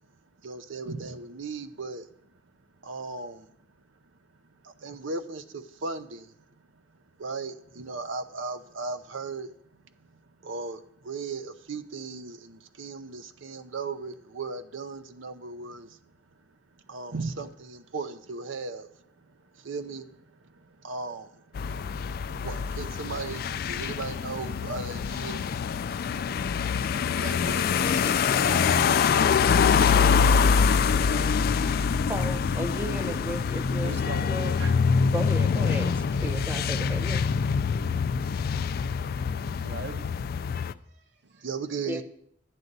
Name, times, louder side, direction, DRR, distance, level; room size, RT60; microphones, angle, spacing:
voice 1, 0.4-2.1 2.8-3.5 4.6-6.3 7.2-9.5 10.4-16.0 16.9-18.9 19.6-20.1 20.8-21.3 22.4-25.4 25.9-26.0 27.1-31.3 41.4-42.0, right 4 dB, 90° right, 0.7 m, -37 dB
sound 1, 21.5-40.7, left 6 dB, 50° left, 0.3 m, -25 dB
voice 2, 32.1-34.5 35.1-37.3 41.9-42.0, equal, 10° right, 0.8 m, -35 dB
sound 2, 33.3-34.7, left 1 dB, 70° left, 0.8 m, -47 dB
voice 3, 33.8-34.7 39.6-40.1 40.8-41.5, right 4 dB, 60° right, 0.9 m, -41 dB
11.0 x 9.2 x 4.0 m
head